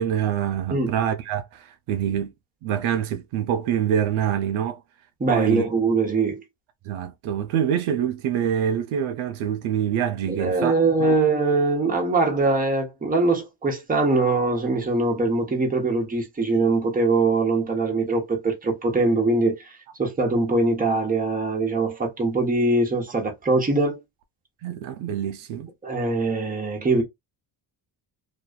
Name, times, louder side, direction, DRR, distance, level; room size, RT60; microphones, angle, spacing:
voice 1, 0.0-2.3 2.6-4.8 5.3-5.6 6.8-11.1 24.6-25.7, right 9 dB, 80° right, 0.6 m, -25 dB
voice 2, 5.2-6.4 10.3-24.0 25.8-27.0, right 3 dB, 15° right, 0.9 m, -22 dB
2.6 x 2.3 x 2.2 m
cardioid pair, 95°, 48 cm